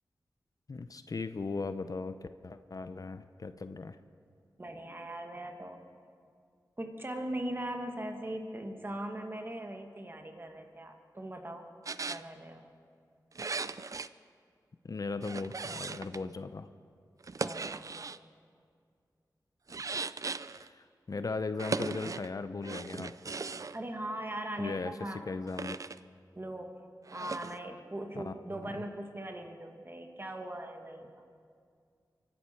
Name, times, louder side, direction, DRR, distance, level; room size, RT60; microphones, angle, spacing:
voice 1, 0.7-4.0 14.8-16.7 20.7-23.1 24.6-24.9 25.3-25.8 28.2-28.8, left 3 dB, 55° left, 11 dB, 0.6 m, -38 dB
voice 2, 4.6-5.8 6.8-11.7 12.1-12.7 17.4-17.9 23.7-25.2 26.4-26.8 27.1-31.1, right 1 dB, 30° right, 4 dB, 1.8 m, -40 dB
sound 1, 11.9-12.2 13.3-14.1 15.2-16.3 17.2-18.2 19.7-20.7 21.6-22.3 22.6-23.8 25.5-26.0 27.1-27.6, right 4 dB, 50° right, 0.4 m, -38 dB
24.5 x 11.5 x 4.5 m, 2.2 s
cardioid pair, 55°, 7 cm